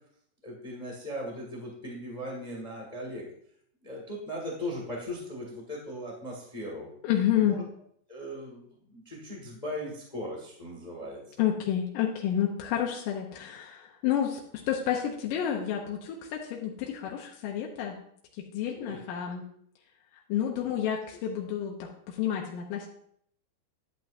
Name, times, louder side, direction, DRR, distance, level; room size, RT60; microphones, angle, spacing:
voice 1, 0.4-3.3 3.8-6.9 7.3-7.6 8.1-11.3 18.7-19.0 20.6-20.8, equal, 55° left, -2 dB, 0.4 m, -38 dB
voice 2, 7.0-7.6 11.4-14.4 14.7-18.0 18.5-19.4 20.3-22.9, left 10 dB, 80° left, -1 dB, 2.4 m, -29 dB
10.5 x 8.2 x 2.5 m, 0.67 s
omnidirectional pair, 3.9 m